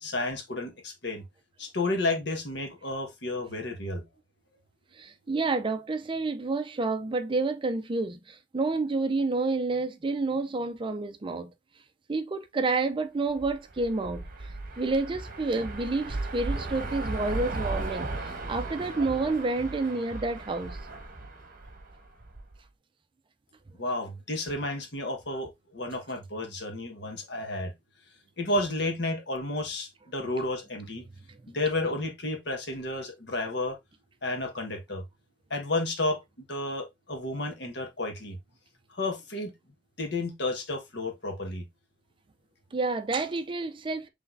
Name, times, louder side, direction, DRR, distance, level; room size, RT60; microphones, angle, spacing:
voice 1, 0.0-1.2 1.6-4.0 23.8-27.7 28.4-31.0 31.5-33.8 34.2-35.0 35.5-38.4 38.9-39.5 40.0-41.6, left 2 dB, 65° left, 1.4 m, -31 dB
voice 2, 5.0-11.5 12.1-20.8 42.7-44.1, right 3 dB, 25° right, 0.4 m, -29 dB
sound 1, 13.3-22.5, right 2 dB, 50° right, 1.1 m, -36 dB
6.0 x 3.4 x 2.6 m
head